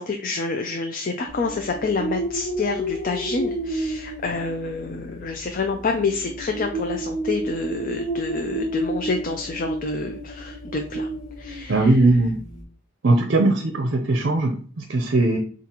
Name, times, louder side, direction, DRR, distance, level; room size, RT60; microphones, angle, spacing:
voice 1, 0.0-11.1 11.4-11.9, left 4 dB, 40° left, 4 dB, 0.4 m, -28 dB
sound 1, 1.3-12.6, right 1 dB, 20° left, 1.4 m, -31 dB
voice 2, 11.7-12.4 13.0-15.4, right 2 dB, 55° right, 4 dB, 0.6 m, -19 dB
7.2 x 2.4 x 2.9 m, 0.43 s
head